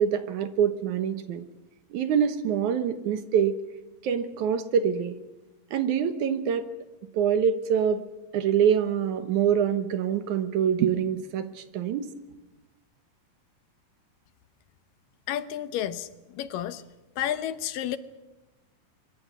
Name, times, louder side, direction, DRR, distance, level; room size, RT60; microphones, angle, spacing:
voice 1, 0.0-1.5 1.9-3.6 4.0-5.2 5.7-6.7 7.1-8.0 8.3-12.1, right 8 dB, 65° right, 9 dB, 2.4 m, -25 dB
voice 2, 15.3-16.8 17.2-18.0, left 11 dB, 80° left, 12 dB, 2.6 m, -31 dB
24.5 x 24.0 x 6.2 m, 1.0 s
omnidirectional pair, 3.9 m